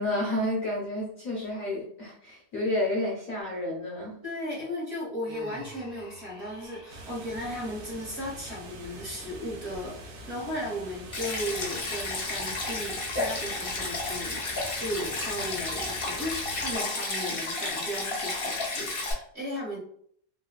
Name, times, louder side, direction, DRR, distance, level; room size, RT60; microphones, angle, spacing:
voice 1, 0.0-4.2, left 1 dB, 65° left, -3 dB, 0.8 m, -30 dB
voice 2, 4.2-19.8, equal, 40° right, -6 dB, 1.2 m, -36 dB
Human voice, 5.3-7.1, equal, 5° right, 0.5 m, -46 dB
sound 1, 6.9-16.8, right 2 dB, 70° right, 0.8 m, -44 dB
Stream, 11.1-19.1, left 3 dB, 80° left, 0.5 m, -32 dB
3.1 x 2.5 x 2.2 m, 0.62 s
omnidirectional pair, 2.0 m